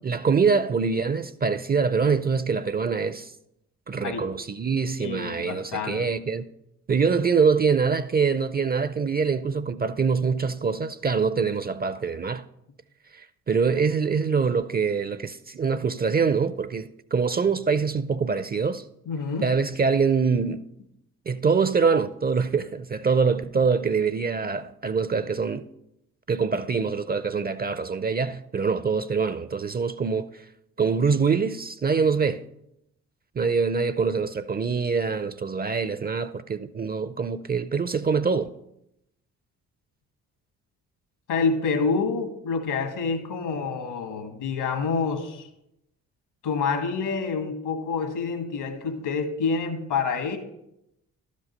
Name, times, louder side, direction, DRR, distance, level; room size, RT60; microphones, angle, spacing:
voice 1, 0.0-3.3 3.9-6.5 6.9-12.5 13.1-18.8 19.4-20.6 21.3-25.7 26.3-30.5 30.8-32.4 33.4-38.5, right 5 dB, 25° right, 0.4 m, -24 dB
voice 2, 5.0-6.0 19.1-19.5 41.3-45.5 46.4-50.4, left 5 dB, 75° left, 1.6 m, -27 dB
12.5 x 5.2 x 5.3 m
hypercardioid pair, 45°, 40 cm